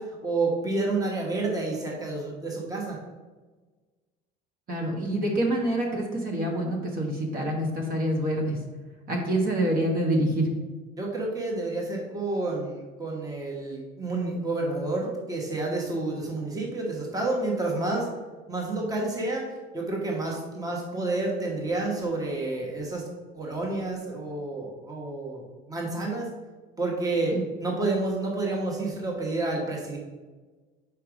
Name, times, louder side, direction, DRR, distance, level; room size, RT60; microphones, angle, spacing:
voice 1, 0.0-3.0 11.0-18.1 18.5-23.1 23.3-26.3 26.8-30.0, right 2 dB, 15° right, -2 dB, 1.2 m, -29 dB
voice 2, 4.7-8.6 9.1-10.5 27.3-27.4, right 1 dB, 45° right, 0 dB, 1.3 m, -26 dB
4.7 x 4.5 x 5.0 m, 1.3 s
cardioid pair, 110°, 21 cm